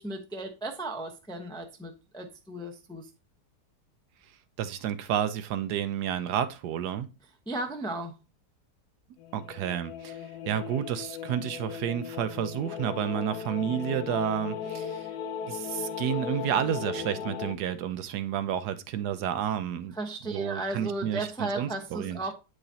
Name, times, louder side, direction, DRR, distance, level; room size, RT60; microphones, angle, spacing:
voice 1, 0.0-3.1 7.5-8.1 19.9-22.3, right 2 dB, 5° left, 0.4 m, -35 dB
voice 2, 4.6-7.1 9.3-15.1 15.5-19.9 20.2-22.3, right 10 dB, 75° right, 1.2 m, -31 dB
sound 1, 9.2-17.6, left 7 dB, 75° left, 1.2 m, -37 dB
8.7 x 4.9 x 2.7 m
omnidirectional pair, 1.8 m